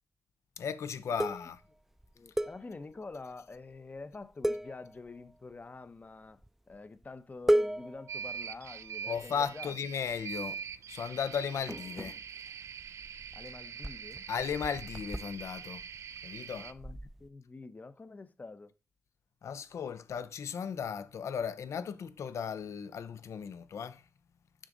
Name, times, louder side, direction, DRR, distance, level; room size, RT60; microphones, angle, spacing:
voice 1, 0.6-1.6 9.1-10.6 10.9-12.2 14.3-15.8 16.2-16.7 19.4-24.1, left 7 dB, 80° left, 0.7 m, -36 dB
sound 1, 1.2-3.2 3.5-3.7 4.0-4.2 4.4-5.5 6.3-6.8 7.0-7.1 7.5-9.5 10.1-10.8 11.0-17.3, right 1 dB, 5° right, 0.4 m, -35 dB
voice 2, 2.1-6.4 6.7-9.8 13.3-14.3 16.6-18.7, left 3 dB, 35° left, 0.7 m, -47 dB
sound 2, 8.1-16.7, right 7 dB, 75° right, 0.4 m, -43 dB
6.3 x 4.9 x 3.9 m
cardioid pair, 70°, 5 cm